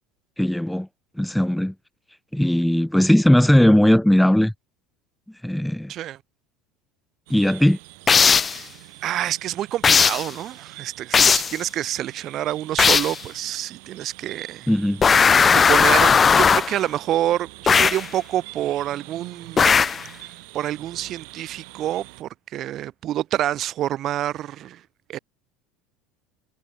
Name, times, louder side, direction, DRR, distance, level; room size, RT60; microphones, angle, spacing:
voice 1, 0.4-0.9 1.2-1.7 2.3-4.5 5.4-5.9 7.3-7.8 14.7-15.0, left 1 dB, ahead, 0.5 m, -18 dB
sound 1, 7.3-22.2, right 34 dB, 75° right, 3.3 m, -44 dB
sound 2, 8.1-8.6 9.8-10.3 11.1-11.6 12.8-13.2 15.0-16.8 17.7-18.1 19.6-20.1, left 6 dB, 25° left, 1.0 m, -16 dB
voice 2, 8.3-8.7 9.0-14.7 15.5-19.8 20.5-24.8 25.1-25.2, right 12 dB, 45° right, 1.0 m, -27 dB
supercardioid pair, 120°, 0 cm